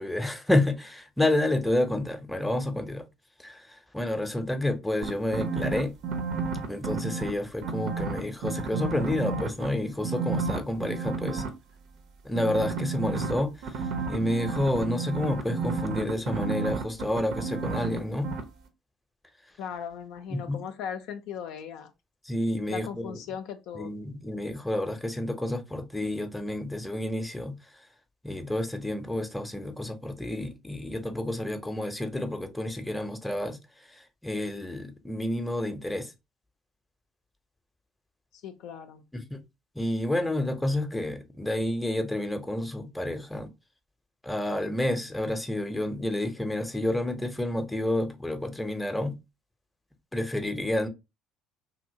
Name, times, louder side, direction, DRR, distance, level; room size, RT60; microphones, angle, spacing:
voice 1, 0.0-3.0 3.4-5.9 6.7-11.4 12.2-13.8 14.1-18.3 20.3-20.6 22.3-23.1 23.8-27.6 28.2-33.6 33.9-36.1 39.1-39.4 39.8-43.5 44.2-49.2 50.1-50.9, left 1 dB, 5° left, 0.6 m, -29 dB
sound 1, 5.0-7.3 7.6-9.7 10.0-11.5 12.3-18.0 18.2-18.4, right 4 dB, 60° right, 0.6 m, -31 dB
voice 2, 19.6-21.9 22.7-23.9 38.3-39.0, left 8 dB, 65° left, 0.4 m, -38 dB
2.8 x 2.8 x 2.7 m
hypercardioid pair, 60°, 0 cm